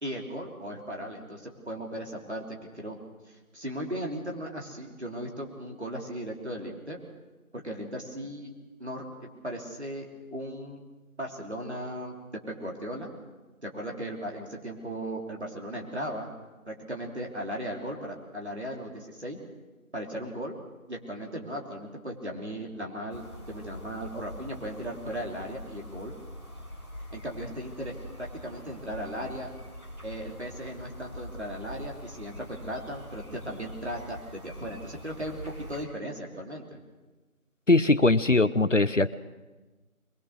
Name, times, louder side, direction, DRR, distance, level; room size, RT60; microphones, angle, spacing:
voice 1, 0.0-3.0 3.3-7.0 7.5-8.5 8.8-10.8 11.2-12.1 12.5-13.1 13.6-16.3 16.7-19.4 19.9-20.5 20.9-26.1 27.1-29.5 30.0-36.8, equal, 45° right, 0 dB, 3.3 m, -37 dB
sound 1, 23.1-35.8, equal, 25° right, 4.3 m, -44 dB
voice 2, 37.7-39.1, left 2 dB, 55° left, 15 dB, 0.8 m, -21 dB
22.5 x 21.5 x 6.5 m, 1.2 s
figure-of-eight pair, 175°, 44 cm